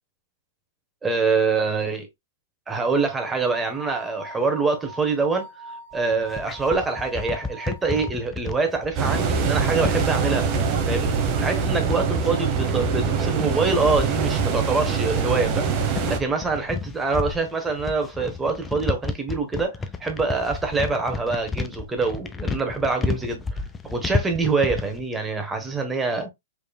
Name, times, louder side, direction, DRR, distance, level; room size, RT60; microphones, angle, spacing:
voice 1, 1.0-2.1 2.7-5.5 5.9-10.5 10.9-11.2 11.4-15.7 16.1-26.3, right 4 dB, 10° right, 1.2 m, -25 dB
sound 1, 2.9-8.1, right 2 dB, 80° right, 1.5 m, -41 dB
sound 2, 5.9-25.0, left 4 dB, 15° left, 0.5 m, -32 dB
sound 3, 9.0-16.2, right 6 dB, 40° right, 1.0 m, -24 dB
5.2 x 3.1 x 2.3 m
hypercardioid pair, 135°, 0 cm